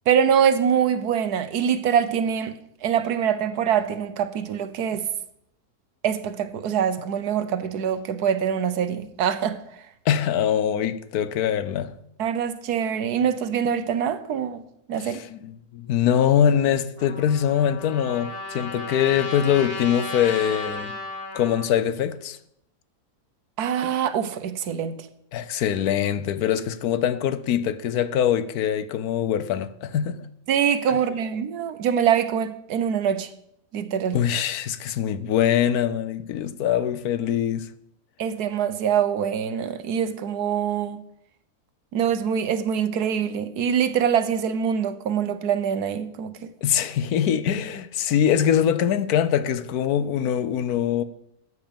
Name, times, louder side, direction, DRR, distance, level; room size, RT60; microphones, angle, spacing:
voice 1, 0.1-5.0 6.0-9.6 12.2-14.6 14.9-15.2 23.6-25.0 30.5-33.3 33.7-34.2 38.2-41.0 41.9-46.5, right 8 dB, 90° right, 1.4 m, -24 dB
voice 2, 10.1-11.9 15.0-21.0 21.3-22.4 25.3-30.2 34.1-37.7 46.6-51.0, left 9 dB, 80° left, 1.2 m, -23 dB
Trumpet, 17.0-21.7, left 3 dB, 40° left, 2.6 m, -34 dB
13.5 x 8.3 x 5.3 m
omnidirectional pair, 1.6 m